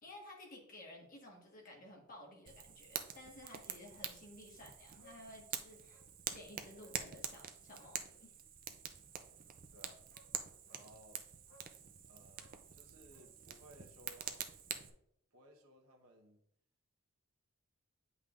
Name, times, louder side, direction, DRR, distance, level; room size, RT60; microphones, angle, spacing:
voice 1, 0.0-6.0 6.3-8.3, left 1 dB, 40° left, 0 dB, 1.5 m, -55 dB
Fire, 2.5-14.9, right 8 dB, 40° right, 0.5 m, -46 dB
Bark, 4.0-4.2 4.5-4.6 5.0-5.3 5.9-6.1 6.8-7.0 7.7-8.0 9.6-9.7 10.1-10.3 10.7-10.9 11.5-11.8 12.3-13.4 13.6-13.7, left 1 dB, 55° left, 0.8 m, -66 dB
voice 2, 10.6-11.2 12.0-14.5 15.3-16.4, right 1 dB, 75° right, 2 dB, 1.2 m, -61 dB
8.5 x 5.5 x 2.5 m, 0.73 s
head